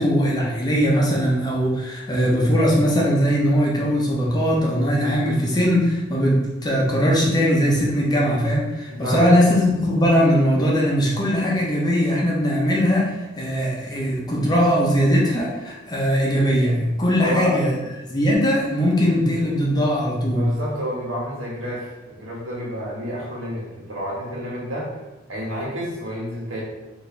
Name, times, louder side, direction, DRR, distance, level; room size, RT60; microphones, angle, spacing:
voice 1, 0.0-17.7 18.1-20.5, equal, 20° left, -3 dB, 0.7 m, -20 dB
voice 2, 8.9-9.3 17.2-17.6 20.3-24.9 25.3-26.6, equal, 75° right, -4 dB, 1.3 m, -29 dB
4.3 x 2.7 x 3.3 m, 1.1 s
head